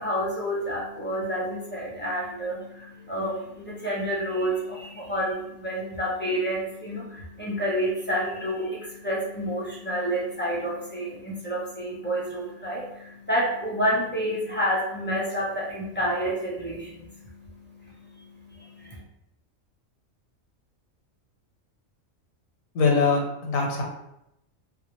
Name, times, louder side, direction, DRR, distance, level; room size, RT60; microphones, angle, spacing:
voice 1, 0.0-19.0, equal, 10° left, -5 dB, 0.5 m, -29 dB
voice 2, 22.7-23.8, left 4 dB, 80° left, 0 dB, 1.2 m, -22 dB
4.6 x 2.0 x 2.9 m, 0.82 s
omnidirectional pair, 1.4 m